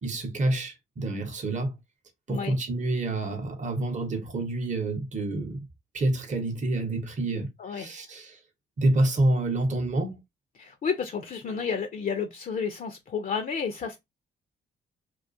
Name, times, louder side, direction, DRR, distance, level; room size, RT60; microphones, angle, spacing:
voice 1, 0.0-1.7 2.3-5.7 5.9-8.4 8.8-10.2, right 2 dB, 35° right, 0.8 m, -28 dB
voice 2, 7.6-7.9 10.6-14.0, left 6 dB, 40° left, 0.5 m, -31 dB
2.3 x 2.2 x 2.5 m
hypercardioid pair, 45°, 21 cm